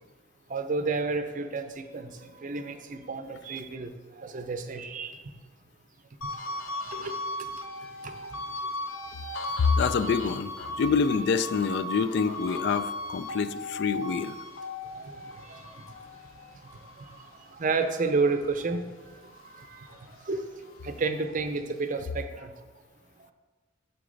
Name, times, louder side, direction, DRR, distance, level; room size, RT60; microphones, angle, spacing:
voice 1, 0.5-5.2 6.8-7.1 8.0-8.1 14.9-15.8 17.0-18.9 19.5-19.9 20.3-20.4 20.8-22.5, right 4 dB, 40° right, 8 dB, 0.5 m, -31 dB
sound 1, 6.2-18.8 19.2-20.9, left 1 dB, 85° left, 0.7 m, -38 dB
voice 2, 9.6-10.5 10.8-14.4, left 5 dB, 60° left, 14 dB, 0.3 m, -26 dB
6.3 x 5.9 x 3.9 m, 1.4 s
head